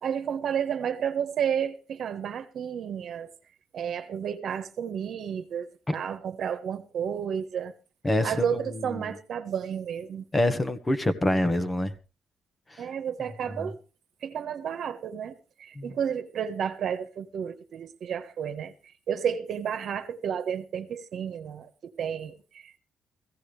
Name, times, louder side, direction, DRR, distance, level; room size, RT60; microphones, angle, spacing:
voice 1, 0.0-3.3 3.7-7.7 8.2-10.3 12.8-13.8 14.2-18.7 19.1-22.8, right 8 dB, 65° right, 1.4 m, -31 dB
voice 2, 8.0-9.0 10.3-11.9 12.7-12.8 13.6-13.7 15.8-15.9, left 1 dB, 20° left, 1.5 m, -26 dB
16.5 x 16.0 x 3.4 m
cardioid pair, 90°, 0 cm